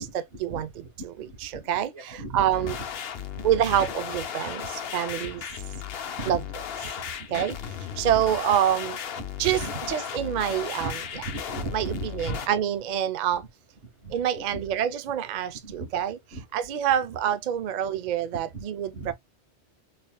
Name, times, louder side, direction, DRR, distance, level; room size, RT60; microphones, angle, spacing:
voice 1, 0.0-1.1 1.4-2.8 3.4-5.4 6.3-6.4 7.3-7.6 8.0-9.0 9.4-9.6 9.9-11.0 11.7-13.4 14.1-16.2 16.5-19.1, right 10 dB, 55° right, 0.5 m, -26 dB
voice 2, 1.2-1.6 1.9-2.8 3.3-3.8 4.6-4.7 5.1-5.4 6.0-6.3 7.0-7.5 8.0-8.2 9.2-9.9 10.8-12.5 14.0-14.7 15.6-15.9 16.3-16.4 18.3-18.6 18.9-19.1, right 2 dB, 90° right, 1.6 m, -37 dB
sound 1, 2.5-12.5, left 8 dB, 65° left, 0.8 m, -35 dB
4.0 x 3.4 x 2.2 m
omnidirectional pair, 1.1 m